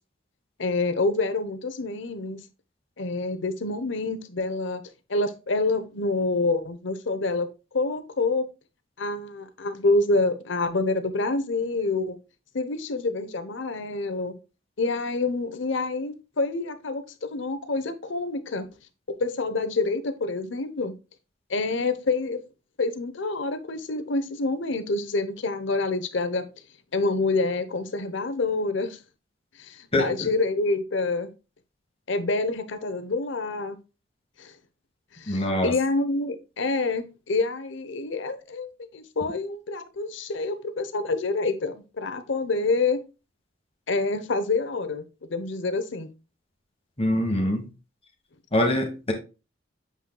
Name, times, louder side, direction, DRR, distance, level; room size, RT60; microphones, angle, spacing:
voice 1, 0.6-2.4 3.0-4.8 5.1-7.5 7.7-8.5 9.0-12.2 12.5-14.3 14.8-18.7 19.2-20.9 21.5-22.4 22.8-26.4 26.9-29.0 29.6-31.3 32.1-33.8 34.4-34.5 35.1-43.0 43.9-46.1, left 3 dB, 70° left, 0.9 m, -27 dB
voice 2, 29.9-30.3 35.3-35.7 47.0-47.7 48.5-49.1, left 1 dB, 30° left, 1.4 m, -24 dB
7.2 x 5.9 x 2.3 m
head